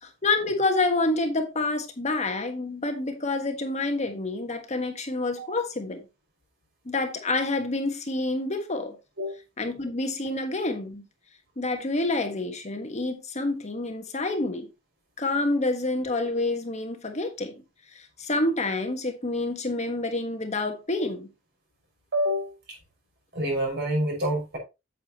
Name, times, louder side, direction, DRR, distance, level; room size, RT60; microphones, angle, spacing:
voice 1, 0.0-6.0 6.8-9.0 9.6-11.0 11.6-14.7 15.2-17.5 17.9-21.3, left 2 dB, 35° left, 1.3 m, -28 dB
voice 2, 22.1-22.8 23.3-24.6, equal, 60° right, 5.6 m, -27 dB
8.4 x 8.3 x 2.9 m
head